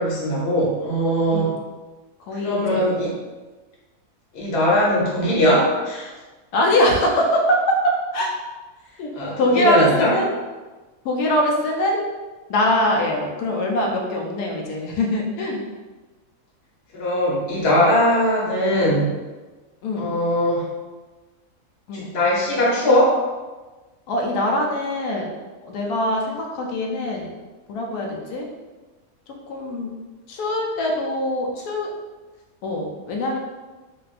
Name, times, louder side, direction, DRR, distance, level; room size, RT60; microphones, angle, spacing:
voice 1, 0.0-1.5 2.4-3.1 4.3-6.1 9.1-10.1 16.9-19.1 20.0-20.6 21.9-23.2, equal, 50° left, -5 dB, 0.9 m, -20 dB
voice 2, 2.2-2.8 6.5-7.6 8.1-8.3 9.0-9.1 9.4-10.3 11.0-12.0 12.5-15.6 19.8-20.0 21.9-22.1 24.1-25.3 25.6-27.3 27.7-28.5 29.5-29.9 30.3-31.9 32.6-33.4, left 1 dB, 85° left, 0 dB, 1.1 m, -22 dB
4.0 x 2.3 x 2.5 m, 1.2 s
omnidirectional pair, 1.6 m